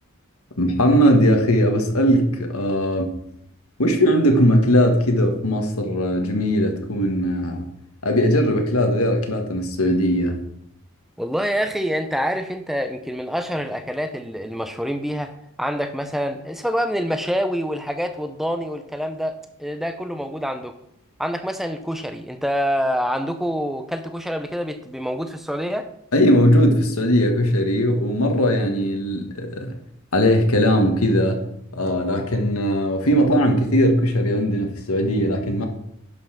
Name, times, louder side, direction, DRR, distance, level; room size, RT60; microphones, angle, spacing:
voice 1, 0.6-3.1 3.8-7.6 8.0-10.4 26.1-29.7 30.1-31.4 31.7-35.7, equal, 80° left, 4 dB, 1.7 m, -19 dB
voice 2, 11.2-15.3 15.6-20.7 21.2-25.9, equal, ahead, 8 dB, 0.7 m, -26 dB
11.0 x 5.6 x 5.9 m, 0.73 s
head